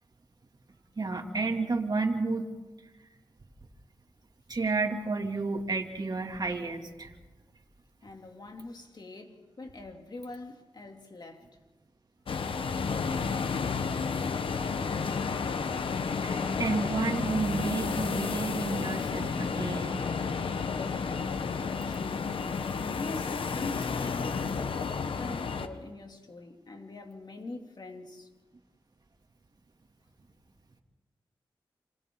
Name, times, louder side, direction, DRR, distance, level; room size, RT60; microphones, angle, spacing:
voice 1, 1.0-2.5 4.5-7.1 16.2-20.1, right 3 dB, 50° right, 2.8 m, -31 dB
voice 2, 8.0-11.5 21.8-22.3 23.0-28.3, left 2 dB, 55° left, 2.9 m, -43 dB
sound 1, 12.3-25.7, left 5 dB, 80° left, 1.1 m, -31 dB
29.0 x 27.5 x 3.9 m
cardioid pair, 55°, 9 cm